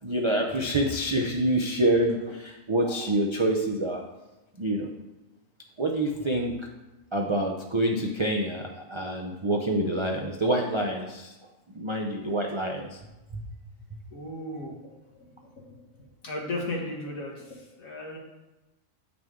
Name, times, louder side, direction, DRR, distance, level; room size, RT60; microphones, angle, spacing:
voice 1, 0.0-4.0 4.6-4.9 5.8-6.5 7.1-11.3 11.7-13.0 13.3-13.4 13.9-14.0 14.6-14.7, right 1 dB, 35° right, 0 dB, 0.4 m, -27 dB
voice 2, 14.1-14.8 15.6-15.7 16.2-17.3 17.8-18.2, left 2 dB, 90° left, -2 dB, 1.7 m, -34 dB
8.3 x 6.0 x 3.7 m, 1.0 s
omnidirectional pair, 1.4 m